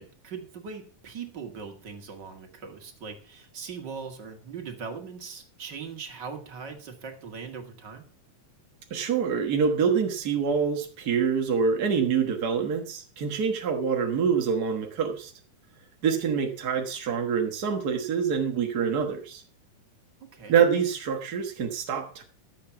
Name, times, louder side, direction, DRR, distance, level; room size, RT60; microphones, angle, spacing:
voice 1, 0.0-8.1 20.3-20.6, right 5 dB, 40° right, 5 dB, 2.0 m, -40 dB
voice 2, 8.9-15.3 16.0-19.4 20.5-22.2, right 6 dB, 60° right, 3 dB, 1.0 m, -26 dB
13.0 x 7.8 x 5.8 m, 0.41 s
omnidirectional pair, 3.7 m